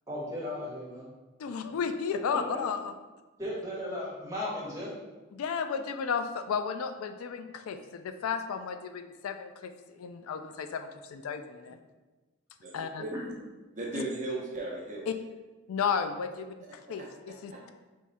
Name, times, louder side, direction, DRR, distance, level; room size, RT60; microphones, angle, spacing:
voice 1, 0.1-1.1 2.5-2.6 3.4-4.9, left 1 dB, 15° right, -6 dB, 1.2 m, -36 dB
voice 2, 1.4-2.9 5.3-11.8 12.7-13.0 13.9-14.0 15.1-15.2 15.7-17.5, left 6 dB, 85° left, 8 dB, 0.3 m, -33 dB
voice 3, 12.6-13.1 13.7-15.1 16.7-17.6, right 2 dB, 35° right, -2 dB, 0.7 m, -37 dB
3.6 x 3.1 x 4.2 m, 1.2 s
head